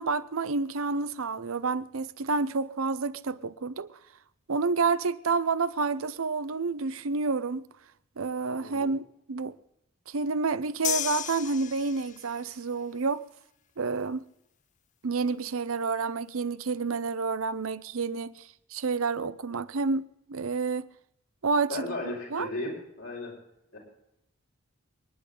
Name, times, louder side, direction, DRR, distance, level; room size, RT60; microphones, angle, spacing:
voice 1, 0.0-3.9 4.5-7.6 8.2-9.0 9.3-9.6 10.1-13.2 13.8-14.2 15.0-20.9 21.4-22.5, right 4 dB, 80° right, 0.7 m, -29 dB
voice 2, 8.6-8.9 21.7-23.3 23.7-23.8, left 2 dB, 75° left, 5.7 m, -35 dB
sound 1, 10.8-12.4, left 11 dB, 35° left, 0.5 m, -33 dB
29.0 x 10.5 x 3.9 m
head